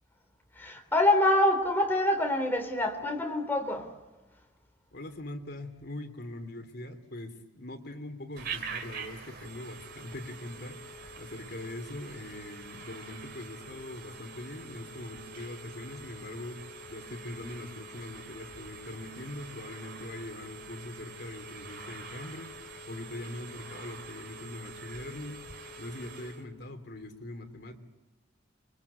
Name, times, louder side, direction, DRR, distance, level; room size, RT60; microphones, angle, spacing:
voice 1, 0.6-3.9, left 1 dB, 10° left, 4 dB, 3.7 m, -26 dB
voice 2, 4.9-10.8 11.2-16.6 16.9-22.5 22.9-25.5 25.8-27.8, left 1 dB, 55° left, 5 dB, 3.0 m, -42 dB
Telephone, 8.4-26.5, right 3 dB, 55° right, 3.2 m, -45 dB
28.0 x 23.0 x 8.4 m, 1.1 s
head